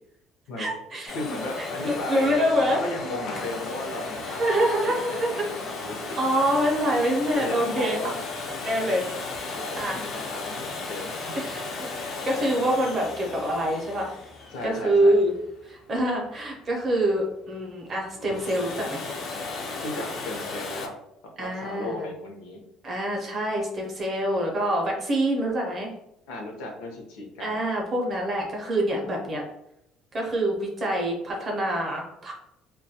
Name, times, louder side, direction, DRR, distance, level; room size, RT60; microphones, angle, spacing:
voice 1, 0.6-1.2 1.6-2.8 4.2-5.5 6.2-8.0 8.6-9.0 9.8-10.0 11.4-11.6 12.2-14.1 14.6-15.3 15.6-19.0 21.4-22.1 22.8-25.9 27.4-29.4 30.1-32.3, right 1 dB, 25° right, -1 dB, 0.5 m, -25 dB
voice 2, 1.1-2.3 2.7-4.8 5.1-6.2 7.4-8.2 9.2-11.3 14.5-15.2 19.8-20.9 21.4-22.6 26.3-27.6, left 2 dB, 80° left, 1 dB, 0.6 m, -35 dB
Domestic sounds home sounds, 1.1-15.8 18.1-20.9, left 3 dB, 35° left, 0.3 m, -35 dB
2.2 x 2.1 x 2.7 m, 0.80 s
cardioid pair, 180°, 0 cm